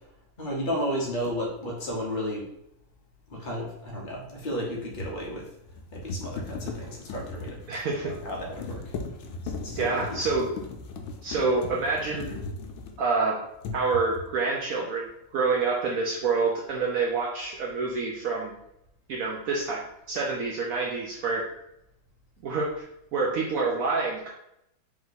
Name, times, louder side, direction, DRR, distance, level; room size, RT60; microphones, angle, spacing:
voice 1, 0.4-2.5 3.3-5.4 5.9-7.6 8.0-8.8 9.6-10.2, equal, 45° left, -3 dB, 0.6 m, -33 dB
sound 1, 1.2-1.4 4.5-13.2 13.6-14.4, left 3 dB, 80° left, 1.4 m, -38 dB
voice 2, 7.7-8.1 9.8-10.5 11.2-12.4 13.0-13.4 13.7-18.5 19.1-21.5 22.4-22.7 23.1-24.3, right 4 dB, 80° right, -2 dB, 0.7 m, -27 dB
3.6 x 3.0 x 4.0 m, 0.79 s
omnidirectional pair, 2.2 m